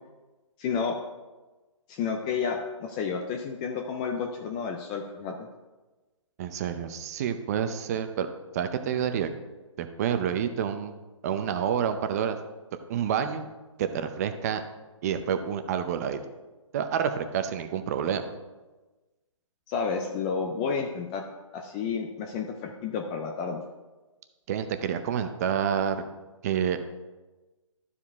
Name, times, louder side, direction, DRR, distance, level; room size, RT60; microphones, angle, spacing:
voice 1, 0.6-1.0 1.9-5.4 19.7-21.2 21.5-23.6, left 5 dB, 15° left, 2 dB, 0.3 m, -31 dB
voice 2, 6.4-8.3 8.5-9.3 9.8-10.9 11.2-12.4 12.9-13.5 13.8-14.6 15.0-16.2 16.7-18.2 24.5-26.0 26.4-26.8, right 8 dB, 30° right, 8 dB, 0.6 m, -28 dB
12.5 x 4.9 x 3.5 m, 1.2 s
hypercardioid pair, 145°, 17 cm